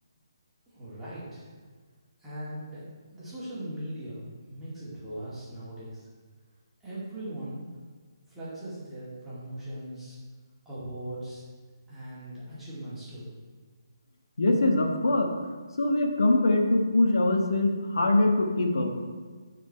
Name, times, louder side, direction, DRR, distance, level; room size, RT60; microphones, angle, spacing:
voice 1, 0.7-1.5 2.2-6.1 6.8-7.7 8.3-10.2 10.6-11.4 11.9-13.6, right 1 dB, 5° right, -12 dB, 2.5 m, -39 dB
voice 2, 14.4-15.3 15.8-18.9, left 2 dB, 70° left, 3 dB, 1.3 m, -23 dB
11.0 x 4.5 x 4.4 m, 1.5 s
figure-of-eight pair, 145°, 2 cm